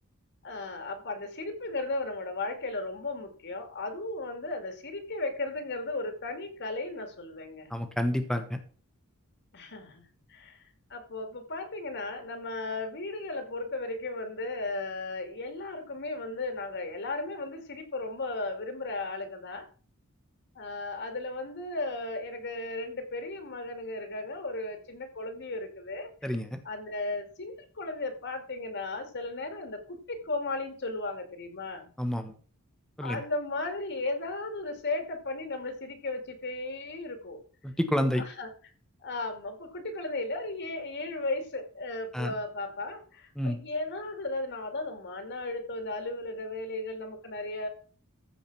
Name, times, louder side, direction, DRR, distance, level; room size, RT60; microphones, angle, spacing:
voice 1, 0.4-7.7 9.5-10.0 10.3-10.6 10.9-19.7 20.5-31.9 33.0-37.4 38.1-38.5 39.0-47.7, left 2 dB, 55° left, 7 dB, 2.3 m, -35 dB
voice 2, 7.7-8.6 26.2-26.5 32.0-32.3 33.0-33.2 37.6-38.2 42.1-42.3 43.4-43.6, equal, 5° left, 7 dB, 1.3 m, -29 dB
14.5 x 5.0 x 6.1 m, 0.41 s
head